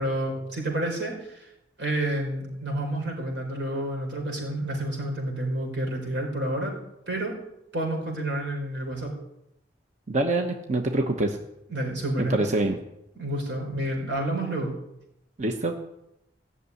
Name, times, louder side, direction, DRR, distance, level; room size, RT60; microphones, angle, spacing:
voice 1, 0.0-1.4 1.8-6.7 7.1-7.3 7.7-9.1 11.7-12.4 13.1-14.7, right 1 dB, 90° right, 0 dB, 4.9 m, -29 dB
voice 2, 10.1-11.4 12.3-12.8 15.4-15.8, right 2 dB, 45° right, 4 dB, 1.1 m, -25 dB
16.0 x 6.9 x 9.6 m, 0.86 s
head